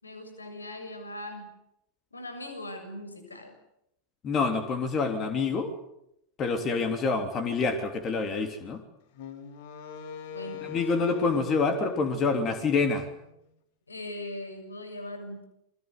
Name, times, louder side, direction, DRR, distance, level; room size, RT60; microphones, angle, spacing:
voice 1, 0.0-1.5 2.1-3.6 10.3-10.8 13.9-15.4, left 1 dB, 80° left, 8 dB, 7.1 m, -40 dB
voice 2, 4.2-5.7 6.4-8.8 10.7-13.1, left 4 dB, 30° left, 7 dB, 3.3 m, -27 dB
Wind instrument woodwind instrument, 9.1-13.4, left 5 dB, 50° left, 3.5 m, -42 dB
29.5 x 22.5 x 8.2 m, 0.81 s
figure-of-eight pair, 90°, 0 cm